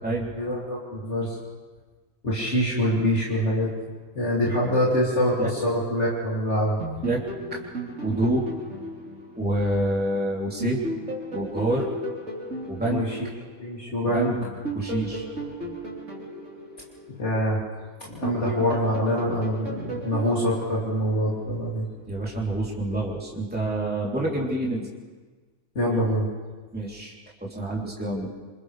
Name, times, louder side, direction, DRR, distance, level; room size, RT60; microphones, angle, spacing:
voice 1, 0.3-1.3 2.2-3.7 4.1-6.8 12.8-13.2 13.6-14.3 17.2-17.6 18.0-21.9 25.7-26.3, equal, 55° left, -6 dB, 3.2 m, -25 dB
sound 1, 6.8-10.1 10.6-13.9 14.4-17.7 18.2-21.5, right 1 dB, 60° right, 4.4 m, -35 dB
voice 2, 8.0-8.5 9.3-10.8 11.3-11.9 12.7-13.1 14.0-14.4 14.7-15.3 22.1-24.9 26.7-27.1 27.4-28.3, right 1 dB, 5° right, -5 dB, 3.3 m, -27 dB
28.0 x 27.0 x 3.4 m, 1.4 s
omnidirectional pair, 1.5 m